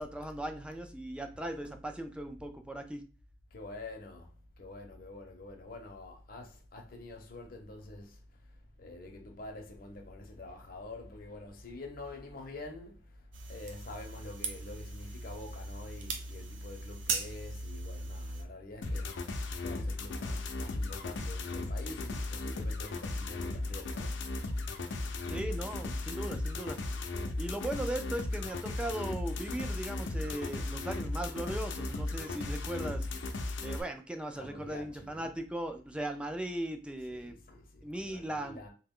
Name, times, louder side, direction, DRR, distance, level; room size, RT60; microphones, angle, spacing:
voice 1, 0.0-3.0 25.3-26.8 27.4-33.1 33.6-37.4 37.8-38.7, right 1 dB, 5° right, 0.3 m, -38 dB
voice 2, 3.5-19.2 19.6-24.2 34.3-35.3 37.0-38.7, left 2 dB, 50° left, 0.7 m, -47 dB
sound 1, 13.3-18.4, right 3 dB, 90° right, 0.6 m, -39 dB
sound 2, 18.8-33.8, left 2 dB, 90° left, 0.6 m, -36 dB
2.9 x 2.2 x 3.6 m
head